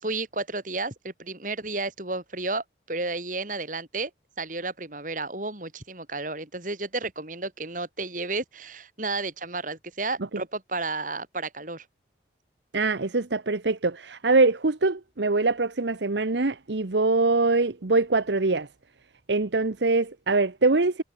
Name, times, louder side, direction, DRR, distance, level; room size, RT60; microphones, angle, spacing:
voice 1, 0.0-4.1 4.4-11.9, right 3 dB, 45° right, 4.2 m, -32 dB
voice 2, 12.7-18.7 19.3-21.0, right 3 dB, 75° right, 1.0 m, -23 dB
head